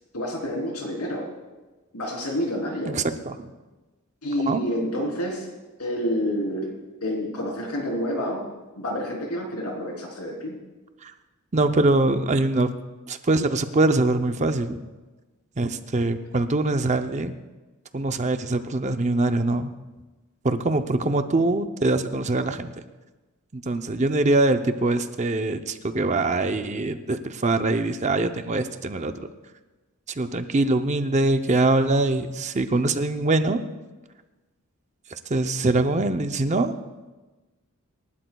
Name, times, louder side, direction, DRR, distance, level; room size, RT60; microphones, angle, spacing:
voice 1, 0.1-1.3 1.9-3.0 4.2-5.5 5.8-6.7 7.0-8.5 8.8-10.5, equal, 85° left, -1 dB, 3.6 m, -28 dB
voice 2, 2.9-3.5 4.5-4.6 11.0-11.1 11.5-12.7 13.1-14.8 15.6-17.4 17.9-19.7 20.4-22.7 23.5-29.2 30.2-33.6 35.3-36.8, right 2 dB, 30° right, 8 dB, 0.6 m, -23 dB
26.5 x 12.5 x 2.3 m, 1.2 s
head